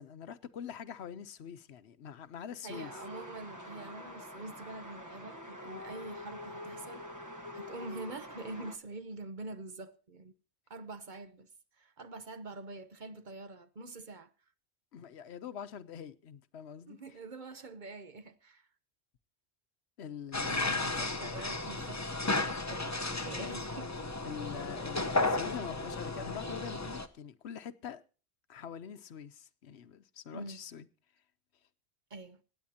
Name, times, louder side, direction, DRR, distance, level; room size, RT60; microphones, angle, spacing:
voice 1, 0.0-2.9 14.9-17.0 20.0-21.3 24.2-28.0 28.5-30.9, left 8 dB, 80° left, 1.0 m, -44 dB
voice 2, 2.6-10.3 10.7-11.5 11.8-14.3 16.9-18.7 20.4-23.9 30.3-30.6 32.1-32.4, right 3 dB, 50° right, 1.0 m, -46 dB
sound 1, 2.7-8.8, left 1 dB, 15° right, 1.1 m, -46 dB
sound 2, 20.3-27.1, left 2 dB, 15° left, 0.8 m, -34 dB
25.0 x 9.3 x 2.8 m
omnidirectional pair, 1.1 m